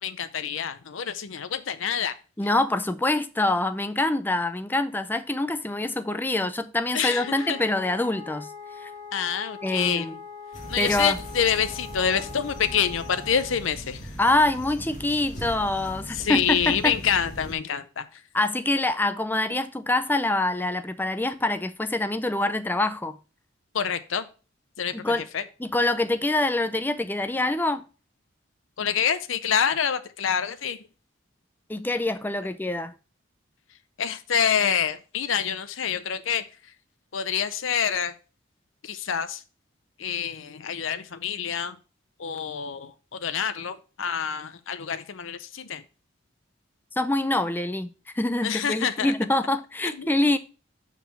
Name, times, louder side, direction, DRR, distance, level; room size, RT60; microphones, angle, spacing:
voice 1, 0.0-2.2 6.9-7.6 9.1-10.1 10.7-14.1 16.1-18.2 23.7-24.3 24.8-25.4 28.8-30.8 34.0-36.4 37.1-38.1 38.8-39.4 40.0-41.8 42.2-45.8 48.4-49.1 49.9-50.1, left 7 dB, 75° left, 0.6 m, -27 dB
voice 2, 2.4-8.5 8.8-8.9 9.6-10.1 10.8-11.2 14.2-16.9 18.3-23.2 25.0-25.2 25.6-27.8 31.7-32.9 47.0-50.4, left 2 dB, 10° left, 0.5 m, -25 dB
Wind instrument woodwind instrument, 7.0-13.6, left 5 dB, 55° right, 1.5 m, -42 dB
sound 1, 10.5-17.5, equal, 40° left, 1.7 m, -39 dB
5.6 x 4.8 x 5.6 m
head